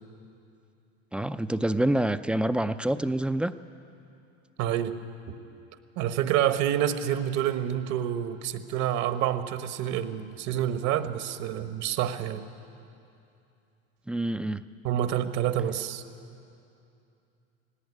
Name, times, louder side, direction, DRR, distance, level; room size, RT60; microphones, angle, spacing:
voice 1, 1.1-3.5 14.1-14.6, right 1 dB, 5° right, 12 dB, 0.4 m, -27 dB
voice 2, 4.6-5.0 6.0-12.5 14.8-16.0, right 10 dB, 55° right, 10 dB, 1.3 m, -28 dB
17.5 x 17.5 x 9.6 m, 2.6 s
supercardioid pair, 115°, 33 cm